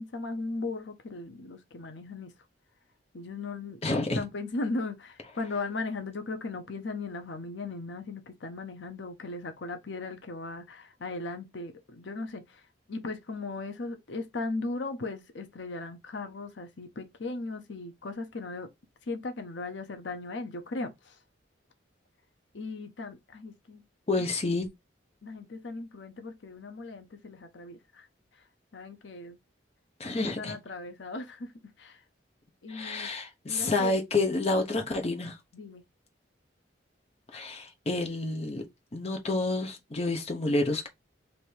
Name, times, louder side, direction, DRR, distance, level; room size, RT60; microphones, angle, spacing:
voice 1, 0.0-2.3 3.1-18.7 19.0-21.2 22.5-23.8 25.2-28.1 28.3-29.4 30.1-31.5 31.8-32.0 32.6-33.1 33.4-34.0 35.5-35.8, left 3 dB, 75° left, 0.7 m, -37 dB
voice 2, 3.8-4.2 24.1-24.7 30.0-30.5 32.7-35.4 37.3-38.7 38.9-40.9, left 2 dB, 35° left, 0.7 m, -29 dB
3.3 x 2.7 x 4.4 m
head